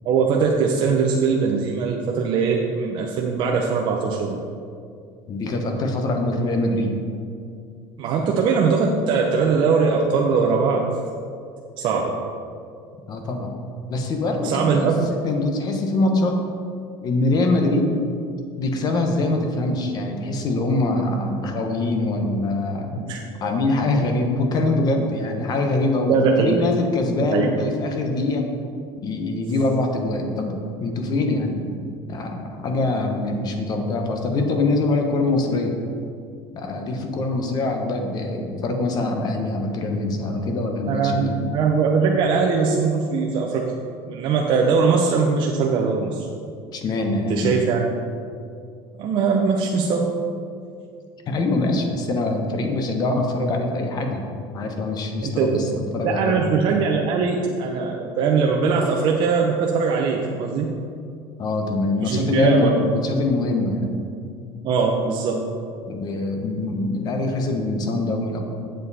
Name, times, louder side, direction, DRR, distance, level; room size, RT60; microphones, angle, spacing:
voice 1, 0.0-4.4 8.0-10.9 11.8-12.2 14.4-15.0 23.0-23.2 26.1-26.6 27.2-27.5 40.9-43.7 44.1-46.3 47.3-47.9 49.0-50.1 55.2-55.5 56.0-60.7 62.0-62.7 64.6-65.4, right 5 dB, 45° right, -1 dB, 0.7 m, -21 dB
voice 2, 5.3-7.0 13.1-13.5 13.9-14.9 15.2-16.4 17.0-18.0 18.6-22.9 23.4-28.5 29.0-31.7 32.1-35.8 36.5-41.4 46.7-47.5 51.3-54.2 54.5-55.7 55.9-56.5 61.4-63.9 65.9-68.4, left 2 dB, 35° left, 3 dB, 1.1 m, -23 dB
7.7 x 7.3 x 4.2 m, 2.4 s
cardioid pair, 140°, 11 cm